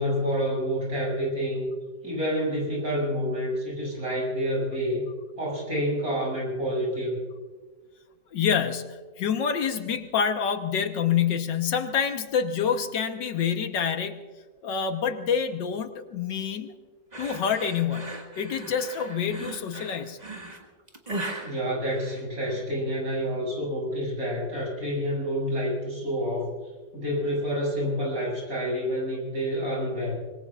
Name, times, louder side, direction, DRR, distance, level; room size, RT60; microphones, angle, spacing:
voice 1, 0.0-1.7 2.0-5.1 5.4-7.2 21.4-26.5 26.9-30.2, equal, 50° right, -3 dB, 7.9 m, -28 dB
voice 2, 8.3-14.3 14.6-16.7 17.2-20.2, left 7 dB, 75° left, 7 dB, 1.8 m, -27 dB
sound 1, 17.1-22.6, right 2 dB, 25° right, 1.9 m, -38 dB
26.0 x 21.5 x 2.5 m, 1.4 s
omnidirectional pair, 1.9 m